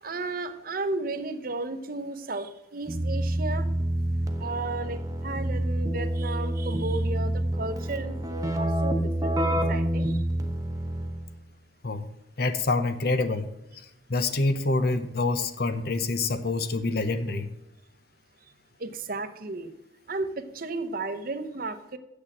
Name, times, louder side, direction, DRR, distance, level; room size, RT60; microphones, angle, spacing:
voice 1, 0.0-3.7 4.4-10.2 18.8-19.7 20.1-22.0, right 3 dB, 50° right, 10 dB, 0.8 m, -34 dB
Keyboard (musical), 2.9-11.3, right 1 dB, 20° right, 1.0 m, -28 dB
voice 2, 12.4-13.5 14.1-17.5, left 3 dB, 55° left, 11 dB, 0.8 m, -26 dB
7.8 x 6.5 x 7.5 m, 0.87 s
head